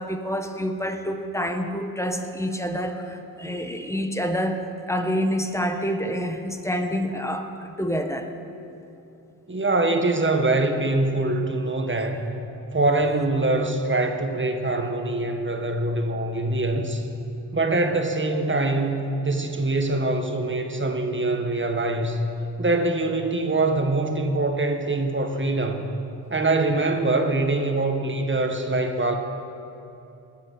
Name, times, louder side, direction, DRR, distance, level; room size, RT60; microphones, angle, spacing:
voice 1, 0.0-4.6 4.9-8.3, equal, 5° left, 5 dB, 1.5 m, -27 dB
voice 2, 9.5-12.2 12.7-17.0 17.5-22.2 22.6-25.9 26.3-29.1, right 2 dB, 30° right, 4 dB, 1.7 m, -24 dB
21.0 x 7.2 x 5.6 m, 2.9 s
supercardioid pair, 50°, 40 cm